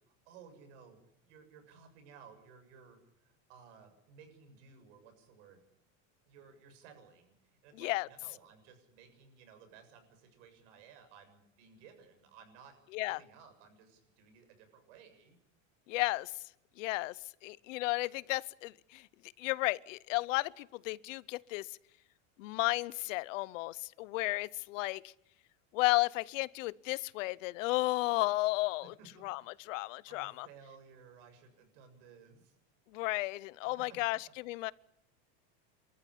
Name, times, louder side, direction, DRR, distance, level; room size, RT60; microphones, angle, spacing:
voice 1, 0.1-1.0 1.2-5.6 6.3-12.7 13.1-15.4 28.8-29.6 30.1-32.6 33.9-34.3, right 6 dB, 65° right, 7.1 m, -57 dB
voice 2, 7.8-8.1 12.9-13.2 15.9-16.3 16.8-17.2 17.4-19.0 19.4-21.7 22.4-25.1 25.7-28.9 29.2-29.4 29.7-30.5 32.9-34.7, left 20 dB, 80° left, 0.8 m, -33 dB
29.0 x 14.0 x 10.0 m
supercardioid pair, 170°, 38 cm